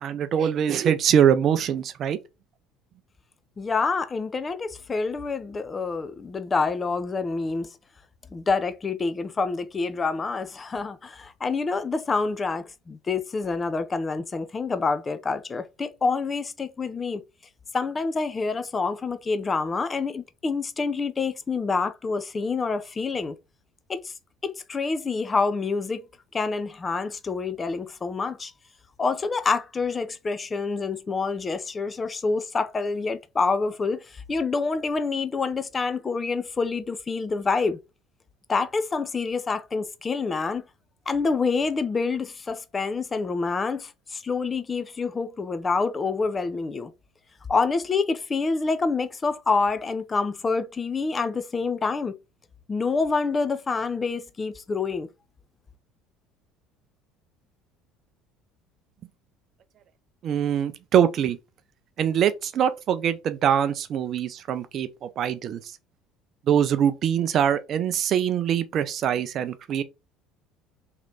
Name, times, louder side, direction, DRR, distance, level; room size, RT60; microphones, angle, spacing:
voice 1, 0.0-2.2 60.2-61.4 62.0-65.6 66.5-69.8, right 9 dB, 50° right, 0.5 m, -23 dB
voice 2, 3.6-7.7 8.3-17.2 17.7-23.4 23.9-24.1 24.4-26.0 26.3-28.5 29.0-37.8 38.5-40.6 41.1-46.9 47.5-52.1 52.7-55.1, left 4 dB, 30° left, 0.5 m, -27 dB
3.2 x 2.9 x 3.8 m
hypercardioid pair, 65°, 0 cm